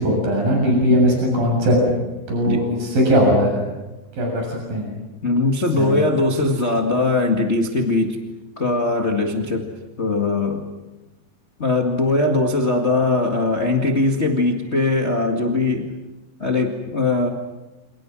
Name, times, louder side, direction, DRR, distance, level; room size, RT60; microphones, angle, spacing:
voice 1, 0.0-1.8 2.3-3.6 4.2-4.9 5.8-6.0, equal, 90° right, 0 dB, 8.9 m, -19 dB
voice 2, 5.2-8.2 8.6-9.7 10.0-10.7 11.6-15.9 16.4-17.3, left 2 dB, 25° left, 2 dB, 1.7 m, -20 dB
29.0 x 28.5 x 6.2 m, 1.1 s
omnidirectional pair, 3.9 m